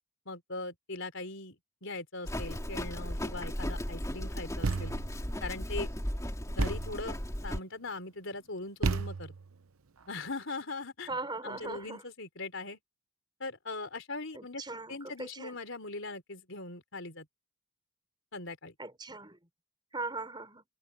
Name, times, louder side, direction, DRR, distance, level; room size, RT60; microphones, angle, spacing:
voice 1, 0.3-4.9 5.4-5.9 6.5-7.2 7.4-9.3 10.1-11.1 11.4-12.8 13.4-17.3 18.3-18.7, left 3 dB, 60° left, 4.1 m, -40 dB
Livestock farm animals working animals, 2.2-7.6, equal, 15° left, 3.4 m, -36 dB
Thump thud, 4.6-5.2 6.6-7.0 8.8-9.5, right 4 dB, 75° right, 0.8 m, -32 dB
voice 2, 11.1-12.0 14.3-15.5 18.8-19.4 19.9-20.6, right 3 dB, 20° right, 3.9 m, -39 dB
head